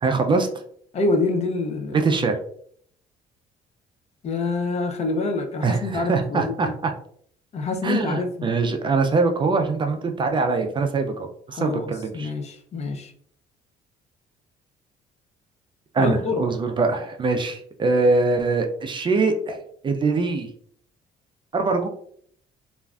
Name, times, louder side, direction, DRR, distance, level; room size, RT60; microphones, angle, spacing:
voice 1, 0.0-0.5 1.9-2.3 5.6-6.9 7.8-12.3 15.9-20.5 21.5-21.9, right 3 dB, 30° right, 5 dB, 0.3 m, -23 dB
voice 2, 0.9-2.0 4.2-6.8 7.5-8.5 11.5-13.1 16.0-16.4, left 3 dB, 40° left, 5 dB, 0.5 m, -26 dB
3.2 x 2.4 x 2.3 m, 0.63 s
cardioid pair, 110°, 17 cm